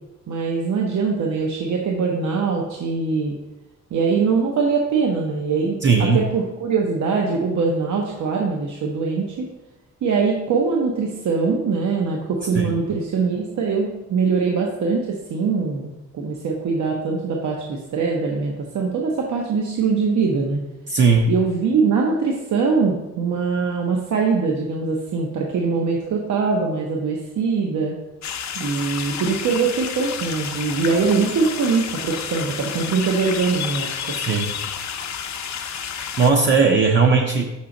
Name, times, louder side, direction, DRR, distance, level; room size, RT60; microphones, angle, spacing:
voice 1, 0.3-3.4 3.9-9.5 10.0-20.6 21.3-28.0 28.5-34.2, right 5 dB, 80° right, 0 dB, 0.8 m, -22 dB
voice 2, 5.8-6.2 12.5-12.7 20.9-21.3 34.1-34.5 36.2-37.5, right 4 dB, 40° right, 1 dB, 0.5 m, -17 dB
sound 1, 28.2-36.3, left 7 dB, 70° left, 0.6 m, -30 dB
5.8 x 5.6 x 3.8 m, 1.0 s
wide cardioid pair, 170°, 29 cm